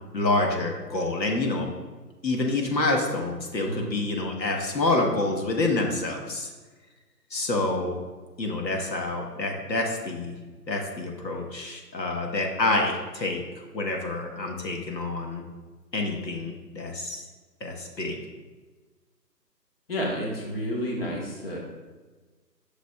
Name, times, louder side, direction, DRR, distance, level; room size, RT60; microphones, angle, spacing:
voice 1, 0.1-1.7 2.2-6.5 7.3-8.0 8.4-10.3 10.7-15.4 15.9-17.2 17.6-18.2, left 2 dB, 85° left, 1 dB, 1.4 m, -27 dB
voice 2, 19.9-21.6, equal, 35° left, -2 dB, 1.3 m, -30 dB
8.2 x 6.4 x 2.3 m, 1.3 s
figure-of-eight pair, 160°, 50 cm